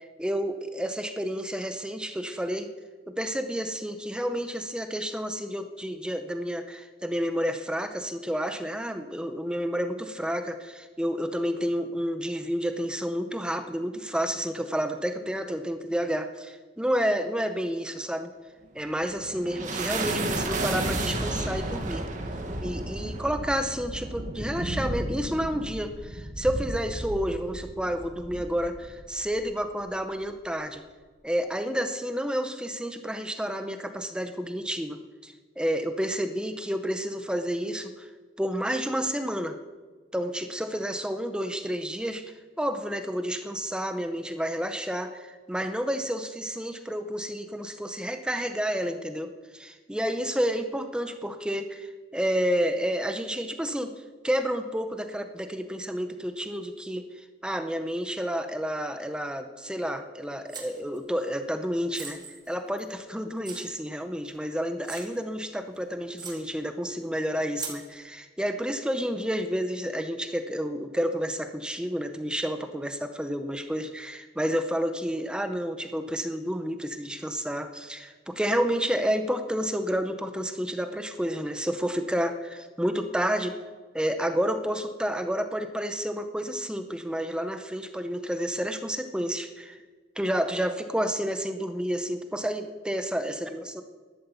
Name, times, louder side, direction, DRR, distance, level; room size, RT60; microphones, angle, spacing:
voice 1, 0.0-2.7 3.1-18.3 18.7-22.0 22.6-30.8 31.2-38.1 38.4-39.6 40.1-53.9 54.2-62.2 62.5-83.6 83.9-89.8 90.2-93.8, equal, 5° right, 7 dB, 0.7 m, -30 dB
sound 1, 18.8-29.5, right 2 dB, 45° right, 1.6 m, -33 dB
sound 2, 60.5-61.0 61.9-63.0 63.4-63.6 64.3-64.4 64.8-65.2 65.7-65.8 66.2-66.4 67.5-67.8, right 5 dB, 25° right, 2.4 m, -40 dB
12.0 x 11.5 x 6.9 m, 1.4 s
head